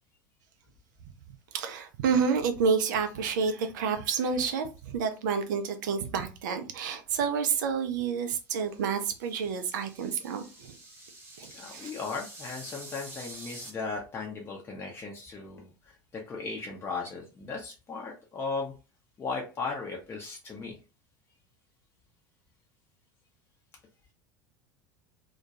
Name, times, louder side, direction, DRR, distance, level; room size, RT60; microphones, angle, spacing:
voice 1, 1.5-10.4 11.4-11.9, right 6 dB, 60° right, 0.5 m, -29 dB
sound 1, 8.6-13.7, right 2 dB, 20° right, 0.8 m, -48 dB
voice 2, 11.5-18.7 19.2-20.8, left 4 dB, 20° left, 0.6 m, -37 dB
2.2 x 2.2 x 2.8 m
figure-of-eight pair, 75°, 11 cm